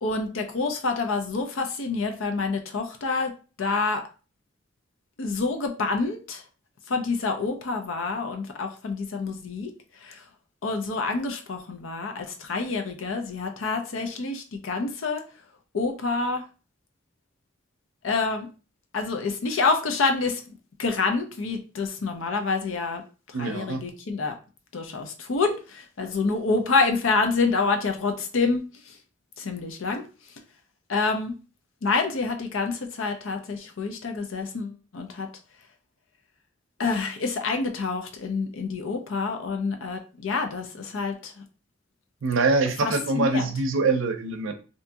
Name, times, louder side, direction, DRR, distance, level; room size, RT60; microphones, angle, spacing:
voice 1, 0.0-3.3 3.6-4.0 5.2-6.4 6.9-9.7 10.0-10.2 10.6-15.2 15.7-16.4 18.0-18.5 18.9-20.4 20.8-23.0 23.4-24.4 24.7-28.9 29.4-30.0 30.9-31.3 31.8-35.3 36.8-41.4 42.8-43.5, left 4 dB, 90° left, 5 dB, 0.6 m, -27 dB
voice 2, 23.3-23.8 42.2-44.5, right 3 dB, 85° right, 7 dB, 0.5 m, -24 dB
2.7 x 2.7 x 2.2 m, 0.34 s
head